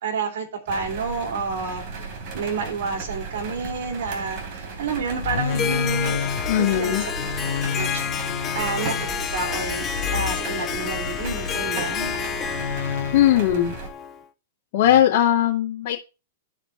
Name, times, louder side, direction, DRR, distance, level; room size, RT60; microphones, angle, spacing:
voice 1, 0.0-6.2 6.6-7.0 7.7-8.0 8.5-12.1, right 5 dB, 65° right, 3.3 m, -30 dB
sound 1, 0.7-13.9, right 4 dB, 45° right, 3.3 m, -35 dB
sound 2, 4.9-11.7 12.5-13.5 14.8-15.0, left 8 dB, 70° left, 0.5 m, -31 dB
Harp, 5.5-14.2, left 8 dB, 25° left, 1.0 m, -30 dB
voice 2, 6.5-7.0 13.1-13.7 14.7-16.0, left 11 dB, 55° left, 2.4 m, -19 dB
12.0 x 5.0 x 4.7 m
hypercardioid pair, 120°, 0 cm